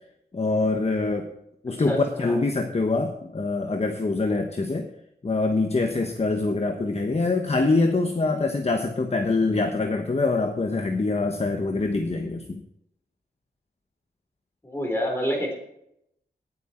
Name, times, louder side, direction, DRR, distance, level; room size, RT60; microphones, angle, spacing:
voice 1, 0.3-1.3 1.6-4.9 5.2-12.6, left 3 dB, 35° left, 5 dB, 1.1 m, -24 dB
voice 2, 1.9-2.4 14.6-15.5, equal, 15° left, 0 dB, 4.1 m, -27 dB
17.5 x 8.2 x 4.4 m, 0.77 s
wide cardioid pair, 110°, 18 cm